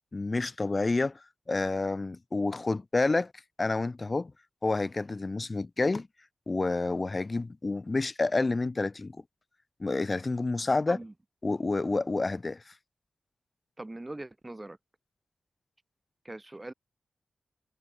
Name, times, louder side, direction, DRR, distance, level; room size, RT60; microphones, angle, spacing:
voice 1, 0.1-3.3 3.6-4.3 4.6-6.1 6.5-9.2 9.8-11.0 11.4-12.7, left 3 dB, 30° left, 2.0 m, -29 dB
voice 2, 13.8-14.8 16.2-16.7, right 2 dB, 15° right, 8.0 m, -41 dB
wide cardioid pair, 145°, 0 cm